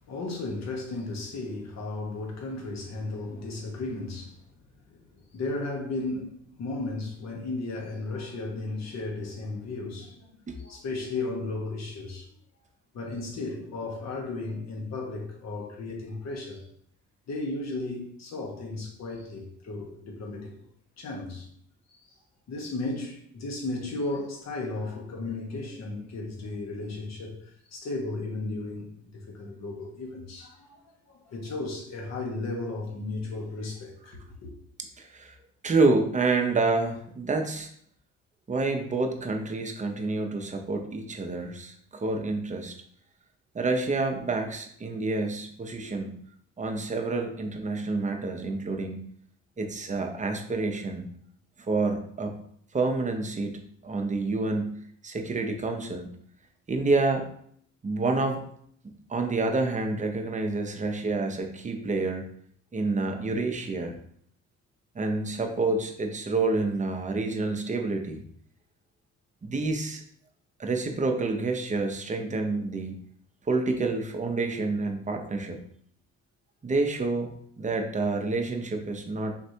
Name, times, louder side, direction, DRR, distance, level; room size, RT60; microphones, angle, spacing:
voice 1, 0.1-4.4 4.9-10.3 10.6-12.3 12.9-16.6 17.3-20.6 21.0-21.5 22.5-30.8 31.1-34.5, left 2 dB, 60° left, 1.2 m, -35 dB
voice 2, 35.0-35.3 35.6-37.7 38.5-42.7 43.5-46.1 46.6-49.0 49.6-51.1 51.7-52.4 52.7-56.1 56.7-57.3 57.8-58.4 58.8-62.2 62.7-63.9 64.9-68.2 69.4-70.0 70.6-72.9 73.5-75.6 76.6-79.3, right 3 dB, 25° right, 0.7 m, -28 dB
4.3 x 3.2 x 2.7 m
cardioid pair, 90°, 30 cm